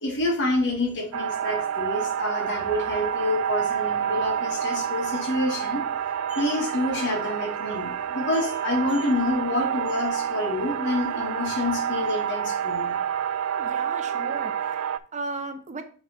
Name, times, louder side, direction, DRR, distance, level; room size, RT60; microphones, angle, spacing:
voice 1, 0.0-5.8 6.1-13.0, left 2 dB, 55° left, 2 dB, 1.7 m, -28 dB
sound 1, 1.1-15.0, right 8 dB, 75° right, 0.4 m, -28 dB
voice 2, 13.6-15.8, right 3 dB, 35° right, 7 dB, 0.7 m, -36 dB
6.2 x 3.5 x 5.5 m, 0.42 s
head